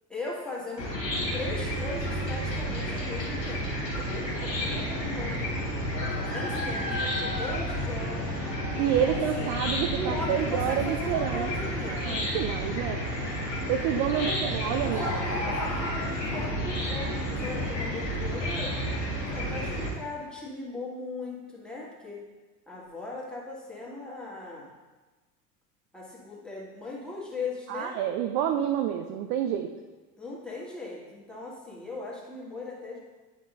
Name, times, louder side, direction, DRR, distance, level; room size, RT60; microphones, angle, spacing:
voice 1, 0.1-0.9 1.3-5.4 5.9-8.4 8.8-9.5 9.9-12.2 14.1-18.8 19.3-22.2 22.7-24.7 25.9-28.0 30.2-33.0, left 2 dB, ahead, -5 dB, 1.8 m, -38 dB
Chicken rooster / Cricket, 0.8-19.9, equal, 80° left, 1.7 m, -31 dB
voice 2, 8.8-11.5 11.9-13.0 13.7-15.0 27.7-29.7, right 9 dB, 35° right, 5 dB, 0.4 m, -28 dB
10.0 x 5.7 x 2.6 m, 1.2 s
figure-of-eight pair, 75°, 49 cm